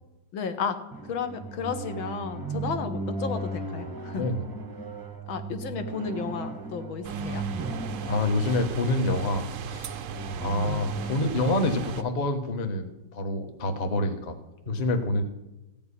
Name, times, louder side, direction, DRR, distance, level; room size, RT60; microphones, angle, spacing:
voice 1, 0.3-0.8 1.1-4.3 5.3-7.4, left 6 dB, 80° left, 8 dB, 1.9 m, -33 dB
sound 1, 0.9-12.5, right 3 dB, 20° right, 0.6 m, -36 dB
sound 2, 7.0-12.0, right 7 dB, 85° right, 0.7 m, -37 dB
voice 2, 8.1-10.0 10.4-14.4 14.7-15.2, left 2 dB, 30° left, 6 dB, 0.9 m, -27 dB
15.5 x 5.3 x 9.8 m, 1.0 s
omnidirectional pair, 2.2 m